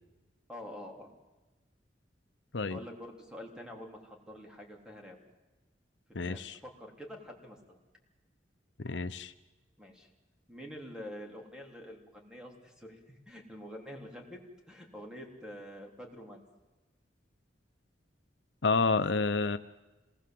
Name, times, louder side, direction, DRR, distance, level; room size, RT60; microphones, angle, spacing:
voice 1, 0.5-1.1 2.7-5.2 6.1-7.8 9.8-10.1 10.5-14.4 14.7-16.4, equal, 5° right, 1 dB, 3.6 m, -47 dB
voice 2, 6.1-6.6 8.8-9.3 18.6-19.6, left 4 dB, 75° left, 11 dB, 0.8 m, -29 dB
27.0 x 19.5 x 7.8 m, 1.1 s
head